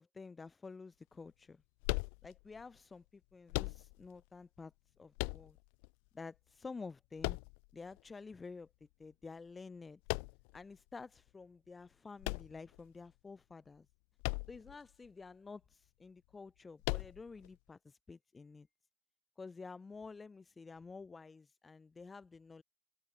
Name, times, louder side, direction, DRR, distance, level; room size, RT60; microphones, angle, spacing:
voice 1, 0.0-1.6 2.2-5.6 6.1-7.4 7.7-8.7 9.0-10.0 10.5-13.9 14.5-18.7 19.4-22.6, left 4 dB, 30° left, 7.2 m, -50 dB
sound 1, 1.8-2.6 3.5-4.2 5.2-5.9 7.2-8.0 10.1-10.6 12.2-13.1 14.2-14.8 15.1-15.2 16.8-17.5, left 40 dB or more, 80° left, 0.7 m, -38 dB
open air
hypercardioid pair, 60°, 0 cm